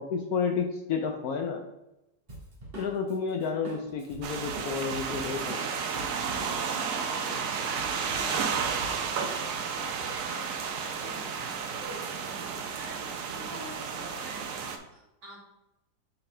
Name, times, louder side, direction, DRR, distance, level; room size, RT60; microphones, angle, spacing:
voice 1, 0.0-1.6 2.8-5.6, left 5 dB, 70° left, 4 dB, 0.9 m, -31 dB
Drum kit, 2.3-6.8 7.1-9.6, right 1 dB, 30° right, 1.8 m, -44 dB
sound 1, 4.2-14.8, right 6 dB, 70° right, 0.8 m, -32 dB
voice 2, 6.9-15.4, right 1 dB, 50° right, -7 dB, 2.8 m, -47 dB
8.1 x 4.1 x 3.3 m, 0.91 s
omnidirectional pair, 2.1 m